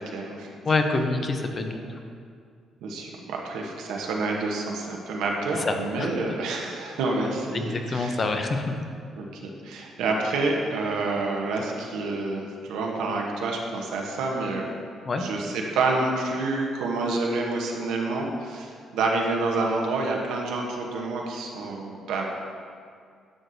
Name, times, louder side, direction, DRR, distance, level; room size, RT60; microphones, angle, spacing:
voice 1, 0.0-0.5 2.8-8.2 9.2-14.7 15.2-22.2, right 3 dB, 90° right, 0 dB, 1.0 m, -28 dB
voice 2, 0.6-1.9 5.6-6.1 7.5-8.7 15.1-15.2, left 3 dB, 35° left, 5 dB, 0.7 m, -26 dB
11.5 x 6.0 x 2.7 m, 2.2 s
cardioid pair, 105°, 0 cm